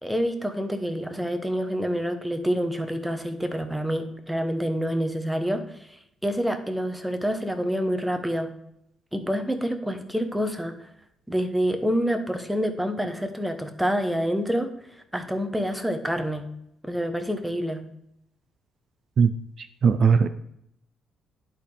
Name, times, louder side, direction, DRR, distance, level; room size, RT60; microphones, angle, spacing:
voice 1, 0.0-8.5 9.1-10.9 11.3-16.5 16.8-17.8, equal, 5° right, 6 dB, 1.0 m, -27 dB
voice 2, 19.6-20.3, right 6 dB, 55° right, 12 dB, 0.4 m, -19 dB
11.5 x 4.2 x 3.3 m, 0.77 s
cardioid pair, 90°, 0 cm